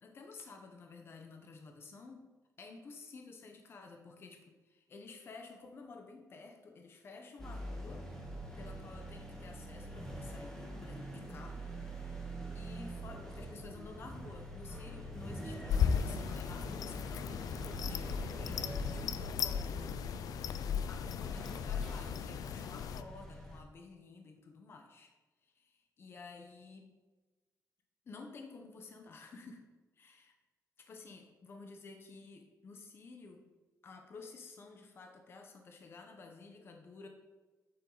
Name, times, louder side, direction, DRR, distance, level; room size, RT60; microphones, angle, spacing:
voice 1, 0.0-2.2 2.6-8.1 8.5-11.7 12.5-18.6 18.9-20.0 20.9-25.1 25.4-26.9 28.0-29.7 29.9-30.3 30.8-33.4 33.8-37.1, left 4 dB, 40° left, 4 dB, 0.9 m, -52 dB
sound 1, 7.4-23.6, right 1 dB, 10° left, 1.6 m, -45 dB
sound 2, 15.7-23.0, left 8 dB, 75° left, 0.4 m, -36 dB
8.8 x 7.4 x 4.0 m, 1.2 s
wide cardioid pair, 180°, 6 cm